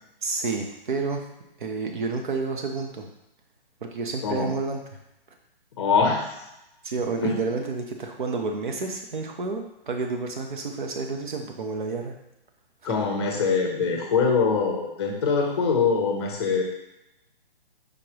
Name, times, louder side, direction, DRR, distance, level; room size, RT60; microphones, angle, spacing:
voice 1, 0.2-1.2 1.6-3.1 3.8-4.8 6.8-12.1 12.9-13.0, right 4 dB, 55° right, 3 dB, 0.8 m, -30 dB
voice 2, 5.8-6.3 7.2-7.6 12.8-16.6, left 5 dB, 25° left, 1 dB, 0.7 m, -23 dB
5.1 x 3.2 x 2.9 m, 0.88 s
hypercardioid pair, 165°, 30 cm